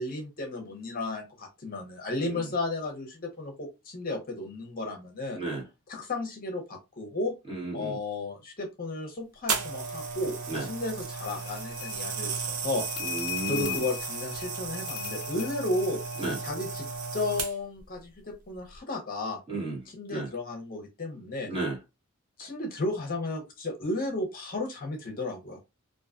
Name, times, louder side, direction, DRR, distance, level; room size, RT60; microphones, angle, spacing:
voice 1, 0.0-5.4 5.9-7.3 7.7-12.8 13.5-16.0 16.4-16.9 17.1-19.4 20.0-21.5 22.4-25.6, left 2 dB, 40° left, 0.7 m, -33 dB
voice 2, 2.2-2.5 5.3-5.6 7.5-8.0 10.5-10.7 13.0-13.8 16.2-16.4 19.5-19.8 20.1-20.3 21.5-21.8, right 3 dB, 25° right, 1.2 m, -33 dB
sound 1, 9.5-17.8 18.5-18.8, right 5 dB, 85° right, 0.6 m, -35 dB
sound 2, 11.2-16.5, left 13 dB, 80° left, 0.4 m, -39 dB
2.5 x 2.2 x 2.4 m
head